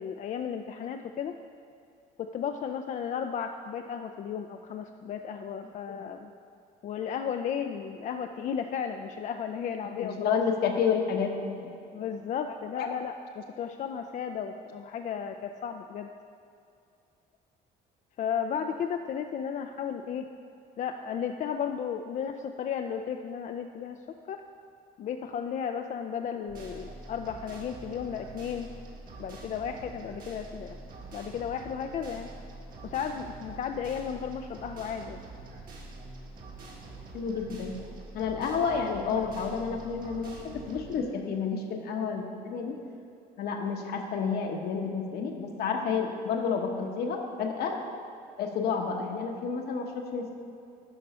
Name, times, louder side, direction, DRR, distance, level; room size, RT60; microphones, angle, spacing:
voice 1, 0.0-1.3 2.2-6.3 6.8-10.4 11.9-16.1 18.2-20.2 20.8-24.0 24.3-24.4 25.0-28.7 29.2-30.7 31.1-32.3 32.8-35.2, left 7 dB, 45° left, 6 dB, 0.4 m, -34 dB
voice 2, 9.8-11.7 12.7-12.9 37.1-37.8 38.1-42.8 43.4-47.8 48.4-50.4, left 6 dB, 70° left, 2 dB, 1.1 m, -30 dB
sound 1, 26.5-41.0, right 3 dB, 60° right, 1.8 m, -45 dB
11.0 x 4.0 x 5.5 m, 2.6 s
cardioid pair, 110°, 17 cm